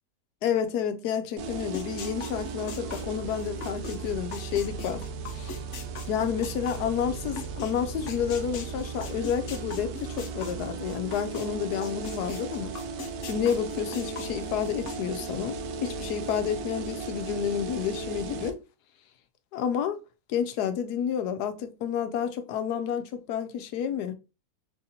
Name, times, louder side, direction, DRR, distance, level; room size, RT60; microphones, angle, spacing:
voice 1, 0.4-5.1 5.3-5.6 6.1-12.7 13.2-15.5 15.8-18.6 19.5-20.0 20.3-24.1, left 8 dB, 90° left, 1.2 m, -30 dB
sound 1, 1.4-18.5, right 4 dB, 80° right, 1.1 m, -36 dB
sound 2, 1.7-7.7 8.1-11.5 11.8-15.0, left 5 dB, 60° left, 0.9 m, -40 dB
3.4 x 2.7 x 3.7 m
omnidirectional pair, 1.7 m